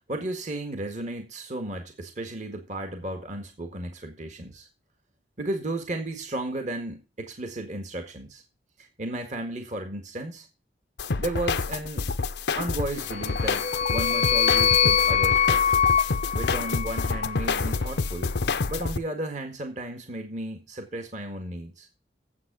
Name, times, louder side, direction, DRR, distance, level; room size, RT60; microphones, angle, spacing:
voice 1, 0.0-4.7 5.4-8.4 8.8-10.5 11.2-12.1 12.5-15.7 16.3-18.4 18.7-21.9, right 1 dB, 45° right, 5 dB, 1.7 m, -34 dB
sound 1, 11.0-19.0, left 4 dB, 70° left, 0.7 m, -28 dB
sound 2, 13.1-17.4, left 8 dB, 35° left, 0.7 m, -23 dB
9.6 x 7.7 x 6.1 m, 0.31 s
head